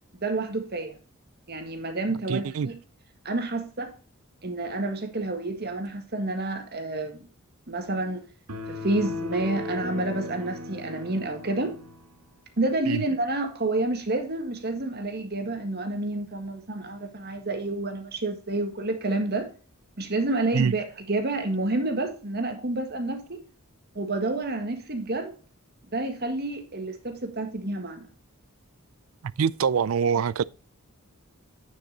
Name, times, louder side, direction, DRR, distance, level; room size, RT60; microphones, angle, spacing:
voice 1, 0.2-1.0 1.5-2.7 3.2-3.9 4.4-7.2 7.7-8.2 8.7-11.7 12.6-19.5 20.0-23.4 23.9-25.3 25.9-28.1, right 2 dB, 45° right, 1.6 m, -29 dB
voice 2, 2.3-2.7 12.9-13.0 20.5-20.7 29.2-30.4, right 6 dB, 65° right, 0.4 m, -25 dB
sound 1, 8.5-12.0, left 2 dB, 85° right, 1.8 m, -36 dB
9.8 x 6.7 x 3.9 m
head